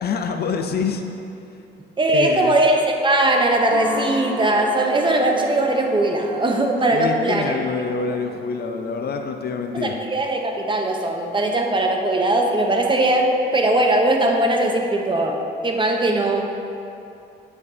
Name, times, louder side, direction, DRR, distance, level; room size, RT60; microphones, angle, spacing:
voice 1, 0.0-1.0 2.1-2.6 6.9-9.9, left 5 dB, 55° left, 5 dB, 0.5 m, -26 dB
voice 2, 2.0-7.5 9.7-16.7, right 1 dB, 25° right, 2 dB, 0.8 m, -20 dB
sound 1, 3.7-12.2, left 1 dB, 90° left, 1.2 m, -36 dB
9.2 x 5.4 x 2.7 m, 2.6 s
cardioid pair, 90°, 20 cm